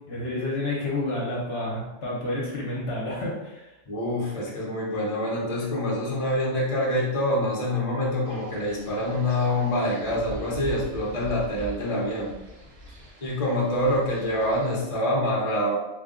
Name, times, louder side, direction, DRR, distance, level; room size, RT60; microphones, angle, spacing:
voice 1, 0.1-3.7, left 2 dB, 55° left, -4 dB, 1.1 m, -30 dB
voice 2, 3.9-12.3 13.2-15.7, left 1 dB, 30° left, -4 dB, 0.8 m, -26 dB
Wind, 8.3-14.8, left 1 dB, 55° right, 1.0 m, -43 dB
3.4 x 2.4 x 3.6 m, 0.98 s
omnidirectional pair, 1.3 m